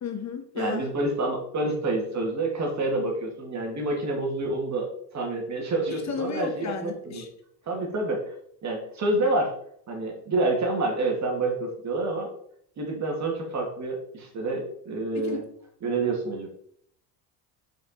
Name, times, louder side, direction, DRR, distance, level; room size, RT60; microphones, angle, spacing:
voice 1, 0.0-0.9 5.9-7.3 15.1-15.4, left 5 dB, 35° left, 5 dB, 1.2 m, -33 dB
voice 2, 0.5-7.2 7.7-8.3 8.6-9.5 9.9-12.3 12.8-15.4 15.8-16.5, right 2 dB, 40° right, 1 dB, 2.5 m, -28 dB
7.7 x 5.3 x 4.4 m, 0.67 s
cardioid pair, 125°, 45 cm